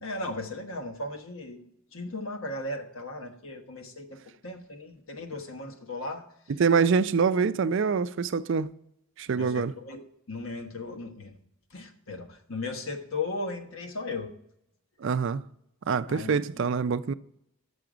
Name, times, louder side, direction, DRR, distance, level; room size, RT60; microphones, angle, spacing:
voice 1, 0.0-6.3 9.3-10.0 10.3-11.4 11.7-14.3 16.1-16.7, left 2 dB, 70° left, 1.2 m, -37 dB
voice 2, 6.6-8.7 9.2-9.7 15.0-15.4 15.9-17.1, right 5 dB, 60° right, 0.4 m, -25 dB
10.5 x 6.9 x 5.0 m
head